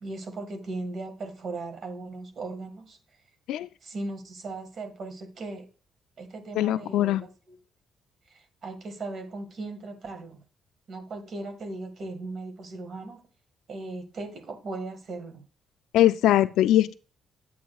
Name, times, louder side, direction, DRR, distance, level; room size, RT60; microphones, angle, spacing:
voice 1, 0.0-3.0 3.8-5.7 6.2-7.6 8.3-10.4 10.9-13.2 13.7-15.4, right 2 dB, 55° right, 1.7 m, -38 dB
voice 2, 6.6-7.2 15.9-16.9, left 13 dB, 85° left, 0.4 m, -21 dB
9.1 x 8.3 x 2.3 m
cardioid pair, 90°, 0 cm